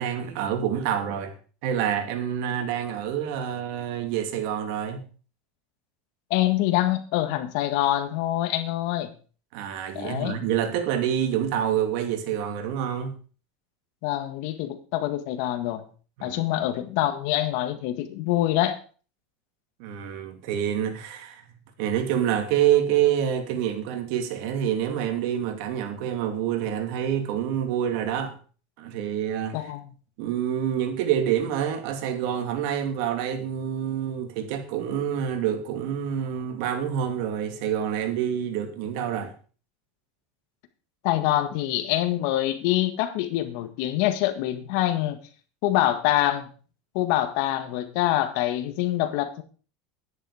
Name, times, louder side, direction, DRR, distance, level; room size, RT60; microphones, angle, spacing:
voice 1, 0.0-1.3 1.6-5.0 9.5-13.2 16.2-16.4 19.8-21.4 21.8-28.3 28.8-29.7 30.2-39.3, right 9 dB, 65° right, 2.6 m, -27 dB
voice 2, 6.3-9.1 9.9-10.4 14.0-15.8 16.2-18.8 29.5-29.9 41.0-45.2 45.6-46.5 46.9-49.4, left 14 dB, 65° left, 1.7 m, -25 dB
11.0 x 9.9 x 5.0 m
supercardioid pair, 125°, 0 cm